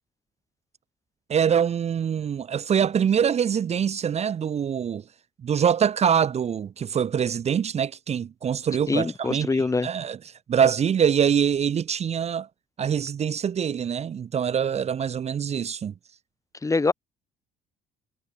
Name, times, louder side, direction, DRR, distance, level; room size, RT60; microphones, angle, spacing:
voice 1, 1.3-5.0 5.4-10.2 10.5-12.5 12.8-15.9, right 8 dB, 40° right, 1.0 m, -24 dB
voice 2, 8.9-9.9 16.6-16.9, left 3 dB, 20° left, 2.0 m, -24 dB
cardioid pair, 110°, 17 cm